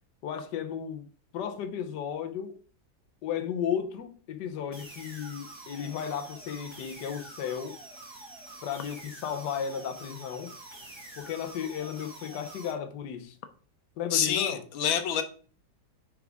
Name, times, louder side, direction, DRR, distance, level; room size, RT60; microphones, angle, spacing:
voice 1, 0.2-1.1 1.3-2.6 3.2-7.8 8.6-10.5 11.2-13.3 14.0-14.6, left 8 dB, 65° left, 1.4 m, -34 dB
sound 1, 4.7-12.7, right 2 dB, 15° right, 1.8 m, -47 dB
voice 2, 14.1-15.2, left 9 dB, 85° left, 1.7 m, -27 dB
9.7 x 5.0 x 3.6 m
omnidirectional pair, 2.1 m